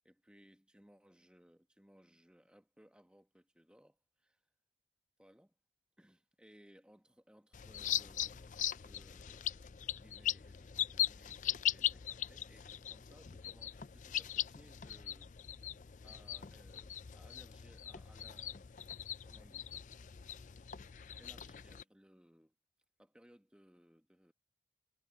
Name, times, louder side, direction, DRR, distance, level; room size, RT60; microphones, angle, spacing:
voice 1, 0.0-4.4 5.2-5.5 6.0-9.5 9.9-15.7 16.0-18.6 19.2-19.9 21.2-22.5 23.0-24.3, equal, 5° right, 1.3 m, -64 dB
sound 1, 7.5-21.8, left 11 dB, 45° left, 0.4 m, -40 dB
head